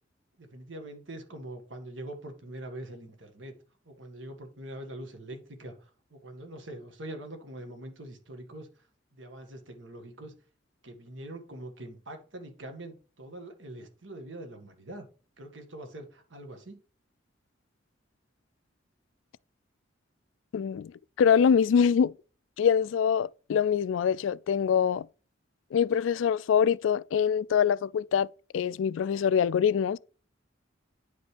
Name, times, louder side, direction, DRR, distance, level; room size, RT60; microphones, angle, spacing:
voice 1, 0.4-3.5 3.9-8.7 9.1-10.3 10.8-15.1 15.4-16.8, right 1 dB, 80° right, 1.8 m, -43 dB
voice 2, 20.5-20.9 21.2-22.1 22.6-25.1 25.7-28.3 28.5-30.0, left 7 dB, 85° left, 0.3 m, -24 dB
9.8 x 5.2 x 3.3 m
head